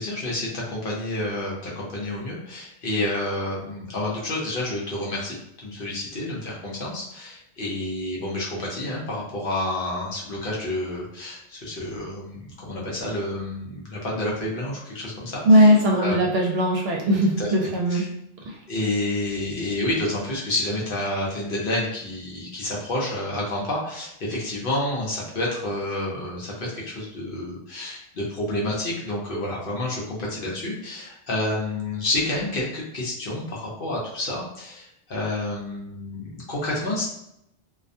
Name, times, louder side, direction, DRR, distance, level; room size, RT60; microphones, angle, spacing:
voice 1, 0.0-16.2 17.1-17.5 17.9-18.1 18.7-37.0, left 1 dB, 55° left, -4 dB, 0.8 m, -29 dB
voice 2, 15.4-18.0 18.4-18.6, equal, 65° right, -1 dB, 0.7 m, -19 dB
2.3 x 2.2 x 2.6 m, 0.77 s
omnidirectional pair, 1.2 m